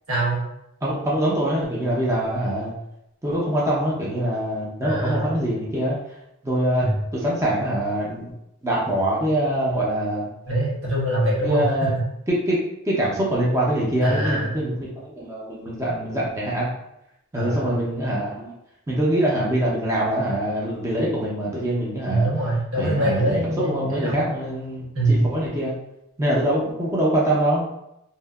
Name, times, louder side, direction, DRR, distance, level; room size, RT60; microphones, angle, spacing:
voice 1, 0.1-0.4 4.8-5.3 6.8-7.0 10.5-11.9 14.0-14.5 17.3-17.7 22.1-24.2 24.9-25.3, right 1 dB, 85° right, -5 dB, 1.1 m, -23 dB
voice 2, 0.8-2.7 3.2-6.0 6.4-8.3 8.6-10.3 11.4-11.9 12.3-12.6 12.9-16.7 17.3-18.5 18.9-22.3 22.8-25.7 26.2-27.6, right 1 dB, 15° right, -5 dB, 0.4 m, -24 dB
2.7 x 2.4 x 2.2 m, 0.82 s
head